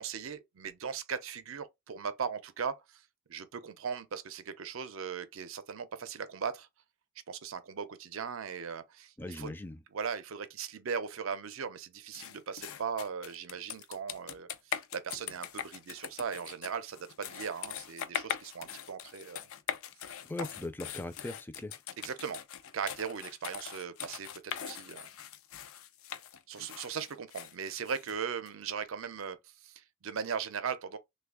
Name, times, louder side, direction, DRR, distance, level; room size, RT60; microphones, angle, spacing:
voice 1, 0.0-3.0 3.3-6.7 7.3-9.5 9.9-19.5 22.0-22.4 22.7-25.1 26.5-31.0, right 6 dB, 80° right, 0.5 m, -38 dB
voice 2, 9.2-9.8 20.3-21.8, left 2 dB, 10° left, 0.3 m, -39 dB
sound 1, 12.1-28.5, left 9 dB, 90° left, 0.4 m, -42 dB
3.2 x 2.2 x 3.5 m
head